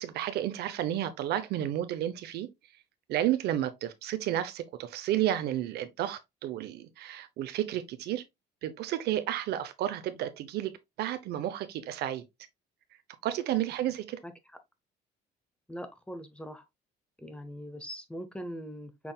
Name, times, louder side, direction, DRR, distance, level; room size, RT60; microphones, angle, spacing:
voice 1, 0.0-2.5 3.1-8.2 8.6-10.7 11.0-12.2 13.2-14.2, right 12 dB, 75° right, 0.7 m, -31 dB
voice 2, 15.7-16.6 17.2-19.1, equal, 5° left, 0.8 m, -41 dB
6.1 x 3.6 x 2.3 m
cardioid pair, 110°, 17 cm